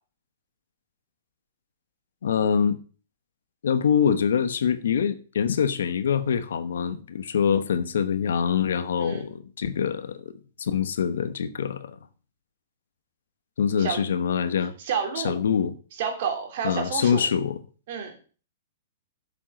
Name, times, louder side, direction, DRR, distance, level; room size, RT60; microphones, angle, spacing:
voice 1, 2.2-2.8 3.6-10.3 10.6-12.0 13.6-14.7 15.2-15.7 16.6-17.6, left 7 dB, 80° left, 1.0 m, -24 dB
voice 2, 9.0-9.3 13.8-14.0 14.8-15.4 16.0-17.2 17.9-18.2, right 7 dB, 60° right, 3.2 m, -30 dB
7.4 x 7.2 x 6.1 m
hypercardioid pair, 130°, 0 cm